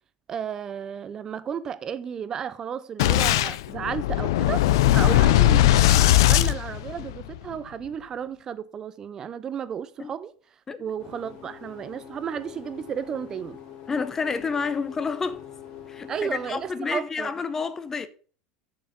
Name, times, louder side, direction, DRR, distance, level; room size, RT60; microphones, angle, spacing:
voice 1, 0.3-4.6 4.9-10.3 10.8-13.6 16.1-17.3, right 8 dB, 25° right, 0.6 m, -33 dB
Boom, 3.0-7.4, left 15 dB, 90° left, 0.5 m, -19 dB
sound 1, 11.0-16.7, left 9 dB, 55° left, 2.9 m, -44 dB
voice 2, 13.9-15.4 15.9-18.1, left 5 dB, 15° left, 0.7 m, -29 dB
7.2 x 6.7 x 5.8 m
supercardioid pair, 150°, 2 cm